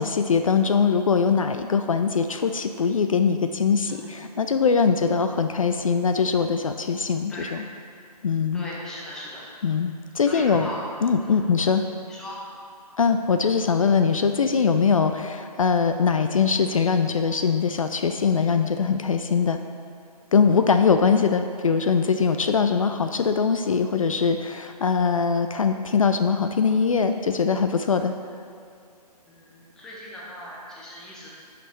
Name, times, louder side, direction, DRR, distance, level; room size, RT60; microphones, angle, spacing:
voice 1, 0.0-7.6 8.2-8.6 9.6-10.7 11.0-11.8 13.0-19.6 20.3-28.1, left 5 dB, 55° left, 7 dB, 0.4 m, -22 dB
voice 2, 8.5-9.5 10.2-10.8 11.2-11.4 12.1-12.4 29.3-31.3, left 1 dB, 5° left, -5 dB, 0.6 m, -38 dB
10.5 x 5.8 x 3.2 m, 2.4 s
figure-of-eight pair, 140°, 21 cm